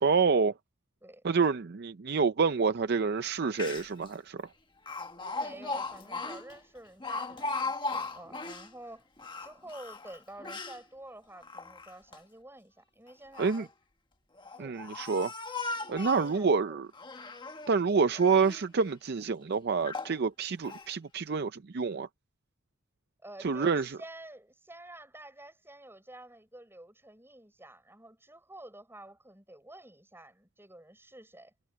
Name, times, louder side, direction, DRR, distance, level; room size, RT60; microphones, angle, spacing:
voice 1, 0.0-0.5 1.2-4.5 13.4-13.7 14.6-15.3 15.9-16.9 17.7-22.1 23.4-24.0, right 5 dB, 50° right, 0.5 m, -27 dB
Speech, 3.3-3.4 3.5-4.1 4.9-8.7 9.2-10.8 11.4-12.2 13.1-13.7 14.4-16.4 16.9-17.7 18.1-18.6 19.2-19.3 19.8-20.2 20.6-20.9, left 3 dB, 25° left, 1.5 m, -38 dB
voice 2, 5.2-9.1 9.4-13.7 14.5-14.7 16.0-16.8 23.2-31.5, right 1 dB, 10° right, 6.9 m, -49 dB
head